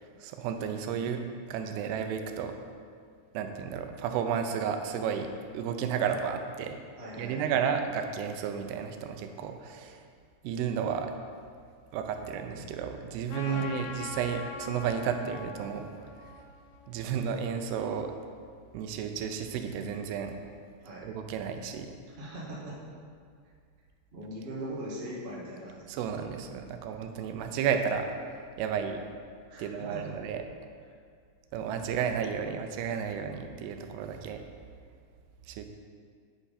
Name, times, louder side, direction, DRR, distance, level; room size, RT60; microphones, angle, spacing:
voice 1, 0.2-1.2 1.5-2.5 3.3-6.8 7.2-10.1 10.4-11.1 11.9-16.3 16.9-18.1 18.7-20.4 21.0-21.9 25.9-28.1 28.6-29.0 29.6-30.4 31.5-34.4 35.5-35.7, right 7 dB, 85° right, 6 dB, 2.7 m, -32 dB
voice 2, 7.0-7.6 13.4-13.7 20.8-21.1 22.2-22.8 24.1-26.0 29.5-30.1, right 1 dB, 45° right, -7 dB, 0.7 m, -40 dB
Trumpet, 13.3-18.0, left 5 dB, 80° left, 2.0 m, -44 dB
8.1 x 8.0 x 4.2 m, 2.1 s
omnidirectional pair, 4.6 m